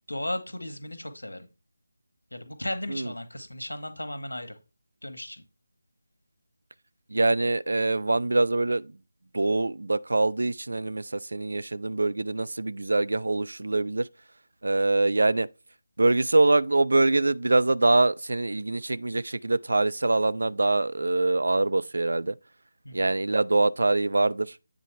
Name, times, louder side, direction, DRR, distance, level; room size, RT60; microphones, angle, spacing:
voice 1, 0.1-1.5 2.3-4.6 5.0-5.4 22.8-23.1, left 1 dB, 75° left, 1.2 m, -35 dB
voice 2, 7.1-8.8 9.3-11.0 11.3-14.0 14.6-15.5 16.0-22.3 22.9-24.5, right 2 dB, 60° right, 0.3 m, -24 dB
8.2 x 3.7 x 3.3 m
figure-of-eight pair, 160°, 0 cm